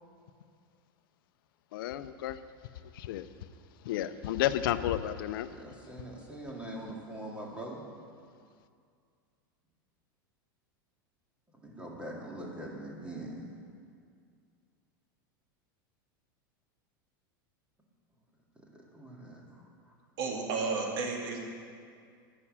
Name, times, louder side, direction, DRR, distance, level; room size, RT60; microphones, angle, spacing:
voice 1, 1.7-2.4 2.9-3.3 3.8-5.5, left 12 dB, 75° left, 13 dB, 0.6 m, -31 dB
voice 2, 5.5-7.8 11.5-13.4 18.7-19.9, right 1 dB, 10° right, -3 dB, 2.4 m, -43 dB
voice 3, 20.2-21.4, right 4 dB, 65° right, 1 dB, 2.3 m, -32 dB
11.0 x 6.1 x 8.6 m, 2.2 s
supercardioid pair, 125°, 12 cm